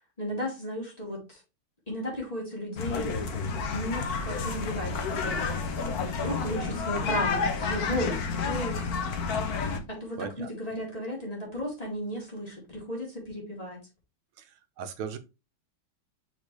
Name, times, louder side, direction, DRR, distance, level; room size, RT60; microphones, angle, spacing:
voice 1, 0.2-1.4 1.9-3.1 3.7-5.4 6.0-8.8 9.9-13.8, equal, 15° left, -4 dB, 3.8 m, -34 dB
sound 1, 2.8-9.8, left 5 dB, 55° left, 1.4 m, -30 dB
voice 2, 10.2-10.5 14.8-15.2, right 6 dB, 80° right, 9 dB, 1.7 m, -36 dB
6.4 x 4.9 x 3.3 m, 0.27 s
omnidirectional pair, 2.2 m